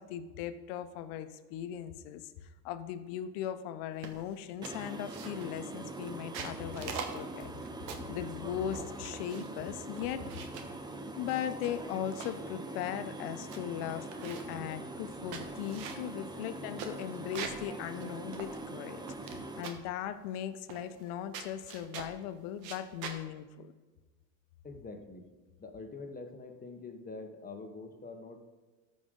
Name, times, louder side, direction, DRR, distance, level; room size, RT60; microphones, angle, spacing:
voice 1, 0.0-7.5 8.1-10.3 11.2-23.7, left 10 dB, 65° left, 11 dB, 0.9 m, -38 dB
sound 1, 4.0-4.3 4.6-5.6 6.1-8.2 8.7-9.6 10.0-10.8 11.4-12.4 12.9-13.0 13.2-13.6 13.9-14.6 15.1-17.7 18.0-18.1 18.3-19.4 19.6-19.9 20.7-21.1 21.3-22.2 22.6-23.2, right 6 dB, 75° right, 1.3 m, -44 dB
sound 2, 4.6-19.6, right 2 dB, 10° right, 0.5 m, -43 dB
voice 2, 24.6-25.2 25.6-28.4, left 3 dB, 20° left, 5 dB, 1.0 m, -45 dB
13.5 x 5.3 x 3.7 m, 1.3 s
supercardioid pair, 100°, 49 cm